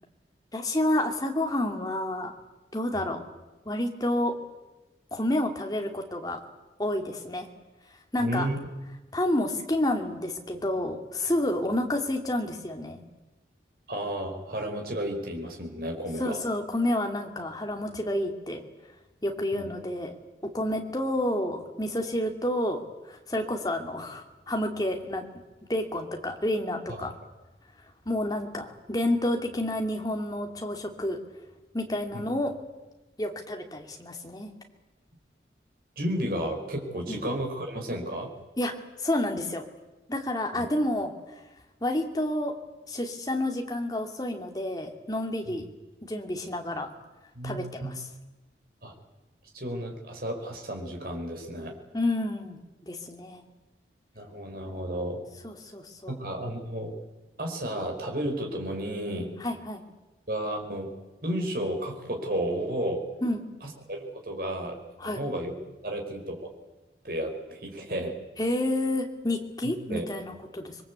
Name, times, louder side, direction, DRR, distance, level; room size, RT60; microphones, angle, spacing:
voice 1, 0.5-2.3 2.7-3.2 3.7-4.3 5.1-6.4 6.8-7.5 8.1-8.5 9.1-13.0 16.2-18.6 19.2-20.1 20.5-22.8 23.1-25.2 25.7-27.1 28.1-31.2 31.7-32.5 33.2-34.5 37.1-37.2 38.6-38.7 39.0-39.6 40.1-41.1 41.8-42.5 42.9-45.7 46.0-46.9 47.4-47.9 51.9-52.6 52.9-53.4 55.4-56.2 59.4-59.8 63.2-63.4 65.0-65.2 68.4-70.8, left 1 dB, 20° left, 3 dB, 2.6 m, -29 dB
voice 2, 8.2-8.5 13.9-16.4 19.5-19.7 26.9-27.0 32.1-32.2 36.0-38.3 40.5-40.6 45.5-45.6 47.3-47.9 48.8-48.9 49.5-51.8 54.1-55.2 56.1-56.9 57.4-59.3 60.3-60.9 61.2-63.1 63.6-65.5 65.8-66.5 67.0-68.2 69.6-70.1, right 1 dB, 55° right, 2 dB, 4.8 m, -32 dB
26.0 x 22.0 x 8.4 m, 1.1 s
head